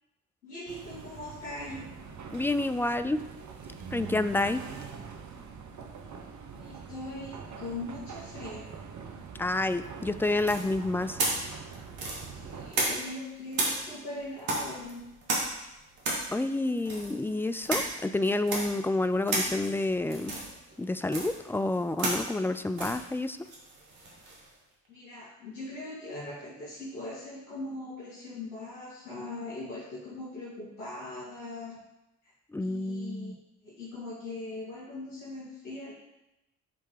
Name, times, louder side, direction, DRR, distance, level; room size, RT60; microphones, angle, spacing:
voice 1, 0.4-1.9 6.5-8.6 12.3-15.0 24.9-31.8 32.6-33.3 33.6-35.9, left 2 dB, 85° left, -10 dB, 2.3 m, -40 dB
sound 1, 0.7-12.7, right 6 dB, 50° right, 1.0 m, -44 dB
voice 2, 2.3-3.2 3.9-4.6 9.4-11.2 16.3-20.3 20.8-23.4 32.5-33.3, left 2 dB, 5° left, 11 dB, 0.4 m, -29 dB
sound 2, 10.4-13.2 13.5-24.5, right 2 dB, 80° right, 1.8 m, -34 dB
8.8 x 3.4 x 4.7 m, 0.93 s
hypercardioid pair, 45°, 37 cm